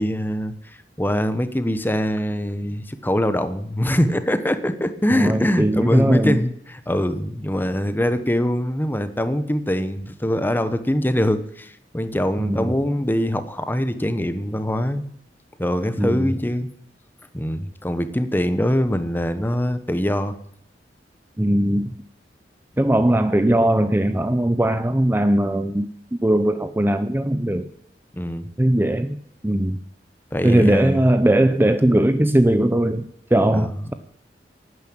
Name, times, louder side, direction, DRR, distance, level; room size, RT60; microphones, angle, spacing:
voice 1, 0.0-15.1 15.6-16.7 17.3-20.3 28.1-28.5 30.3-31.0 33.5-33.7, equal, 10° left, 11 dB, 1.0 m, -23 dB
voice 2, 5.1-6.4 12.4-12.7 16.0-16.3 21.4-21.9 22.8-25.9 26.2-27.7 28.6-29.2 29.4-29.8 30.4-33.0 33.3-33.9, right 1 dB, 10° right, 10 dB, 0.6 m, -19 dB
12.0 x 9.7 x 8.9 m, 0.71 s
head